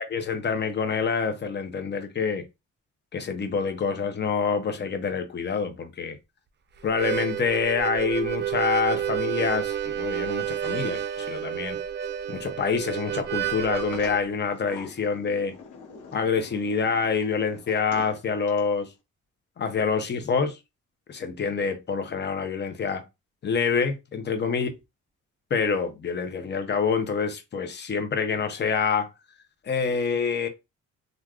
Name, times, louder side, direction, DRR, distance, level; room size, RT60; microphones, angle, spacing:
voice 1, 0.1-2.5 3.1-6.2 6.8-11.8 12.3-15.5 16.1-18.9 19.6-20.6 21.1-23.0 23.4-24.7 25.5-29.1 29.6-30.5, left 5 dB, 35° left, 0.7 m, -26 dB
Harmonica, 6.8-14.2, right 10 dB, 35° right, 0.4 m, -30 dB
Sliding door, 13.3-18.8, left 4 dB, 85° left, 1.0 m, -44 dB
3.4 x 2.5 x 2.3 m
cardioid pair, 90°, 30 cm